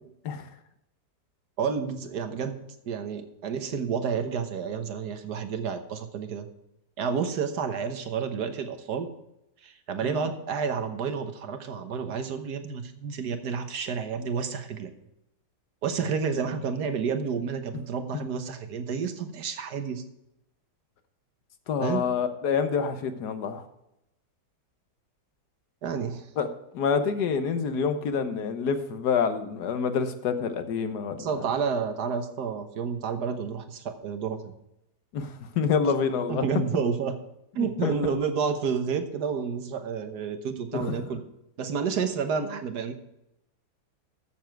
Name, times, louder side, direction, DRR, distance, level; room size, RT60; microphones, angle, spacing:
voice 1, 1.6-6.5 7.0-9.1 9.6-14.9 15.8-20.0 21.8-22.0 25.8-26.3 31.2-34.5 36.3-37.2 37.6-41.2 41.6-42.9, right 6 dB, 70° right, 8 dB, 1.6 m, -30 dB
voice 2, 21.7-23.7 26.4-26.5 26.7-31.3 35.1-36.5 37.6-38.0 40.7-41.1, left 6 dB, 75° left, 9 dB, 1.5 m, -27 dB
14.0 x 7.1 x 4.6 m, 0.85 s
omnidirectional pair, 1.8 m